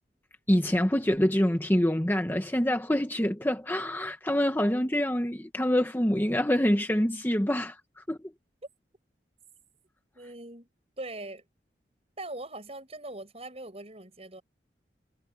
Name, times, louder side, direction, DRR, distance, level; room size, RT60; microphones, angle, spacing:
voice 1, 0.5-7.7 8.1-8.2, equal, 10° left, 1.1 m, -26 dB
voice 2, 10.1-10.7 11.0-11.4 12.2-14.4, right 2 dB, 35° right, 7.8 m, -41 dB
head